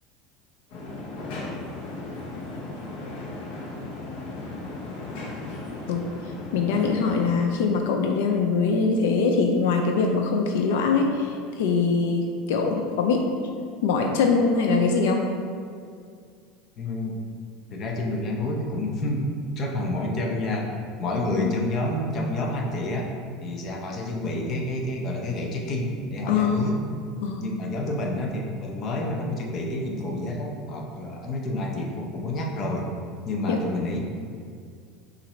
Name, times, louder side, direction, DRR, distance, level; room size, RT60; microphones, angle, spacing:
sound 1, 0.7-7.5, left 2 dB, 60° left, 0.9 m, -36 dB
voice 1, 6.5-13.3 13.8-15.3 21.4-21.5 26.3-26.7 27.2-27.4 33.5-33.6, left 4 dB, 80° left, 2 dB, 0.4 m, -23 dB
voice 2, 16.8-17.2 17.7-19.3 19.6-20.7 21.0-23.1 23.4-26.8 27.4-32.9 33.2-34.0, left 1 dB, 35° left, 0 dB, 0.6 m, -29 dB
5.7 x 2.5 x 3.2 m, 2.2 s
supercardioid pair, 145°, 0 cm